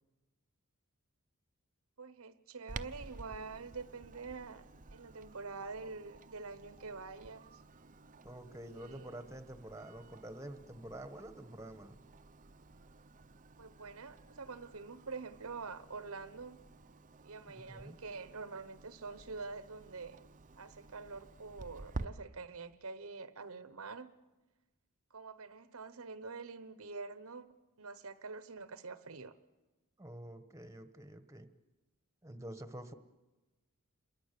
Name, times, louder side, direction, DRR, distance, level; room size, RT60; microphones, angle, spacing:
voice 1, 2.0-4.7 4.9-7.6 8.6-9.2 13.6-16.6 17.2-20.2 20.6-24.1 25.1-27.5 27.8-29.3, right 4 dB, 70° right, 1.0 m, -46 dB
Clock, 2.7-22.1, right 3 dB, 35° right, 0.7 m, -51 dB
voice 2, 8.2-12.0 17.5-18.0 30.0-31.5 32.2-32.9, right 1 dB, 15° right, 1.2 m, -48 dB
27.5 x 23.0 x 6.8 m
head